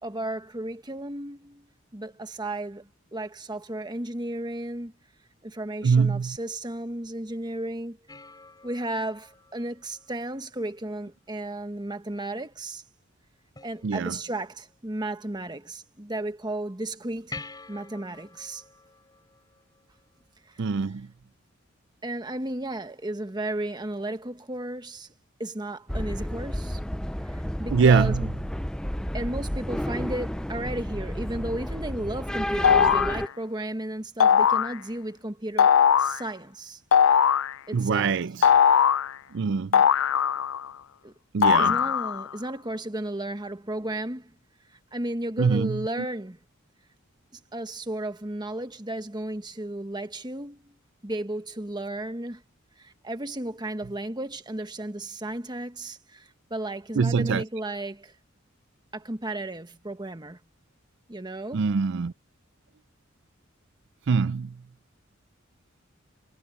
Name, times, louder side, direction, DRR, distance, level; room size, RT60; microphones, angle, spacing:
voice 1, 0.0-4.9 5.4-8.0 8.6-12.8 13.6-17.3 17.7-18.6 20.5-20.7 22.0-25.1 25.4-26.8 27.2-28.3 29.1-35.7 36.0-36.8 37.7-38.2 41.0-41.1 41.6-44.3 44.7-46.4 47.3-50.7 51.0-52.4 52.8-58.1 58.9-60.4 61.1-61.6, right 1 dB, 20° right, 1.4 m, -34 dB
voice 2, 5.8-6.4 13.8-14.2 20.6-21.1 27.7-28.3 37.7-38.5 39.3-39.8 41.3-41.8 45.4-45.8 56.9-57.4 61.5-62.1 64.1-64.6, right 5 dB, 60° right, 0.4 m, -23 dB
sound 1, 8.1-10.7 13.5-14.5 17.3-20.2 23.3-23.4, left 3 dB, 20° left, 7.9 m, -47 dB
sound 2, 25.9-33.3, equal, 5° left, 0.4 m, -31 dB
sound 3, 32.6-33.2 34.2-34.7 35.6-36.2 36.9-37.5 38.4-39.1 39.7-40.7 41.4-42.2, left 7 dB, 75° left, 0.4 m, -19 dB
head